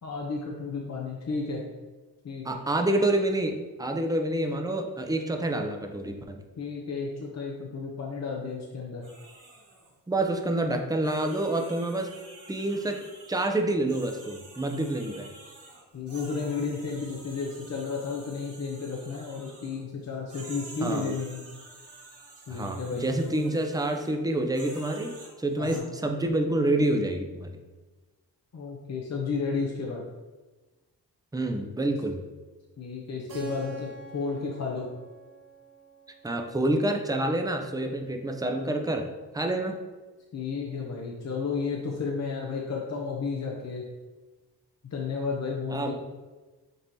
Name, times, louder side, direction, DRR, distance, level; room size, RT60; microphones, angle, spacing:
voice 1, 0.0-1.6 2.2-2.6 6.6-9.0 15.9-21.4 22.5-23.1 25.6-25.8 28.5-30.0 31.9-32.0 32.8-34.9 40.3-43.8 44.9-45.9, left 4 dB, 40° left, -1 dB, 0.7 m, -32 dB
voice 2, 2.4-6.4 10.1-12.1 12.5-13.0 13.3-15.3 20.8-21.1 22.5-27.5 31.3-32.2 36.2-39.1 39.3-39.8 45.7-45.9, right 1 dB, 10° right, 4 dB, 0.5 m, -28 dB
sound 1, 9.0-9.9 10.4-10.5 11.0-13.5 13.9-19.8 20.3-24.1 24.5-25.8, right 2 dB, 85° right, 1.5 m, -49 dB
Keyboard (musical), 33.3-37.8, right 5 dB, 55° right, 0.9 m, -46 dB
5.4 x 2.9 x 2.7 m, 1.2 s
cardioid pair, 50°, 40 cm